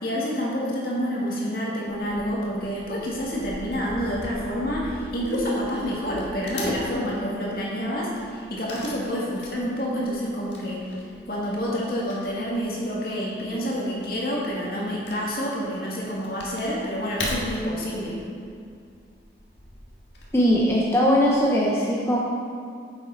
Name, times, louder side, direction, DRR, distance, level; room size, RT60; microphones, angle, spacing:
voice 1, 0.0-10.9 11.3-18.2, equal, 55° left, -4 dB, 2.0 m, -28 dB
Wood / Tearing, 1.9-21.5, left 1 dB, 85° left, 1.6 m, -41 dB
voice 2, 20.3-22.2, equal, 15° left, -4 dB, 0.7 m, -20 dB
9.2 x 7.2 x 4.0 m, 2.3 s
head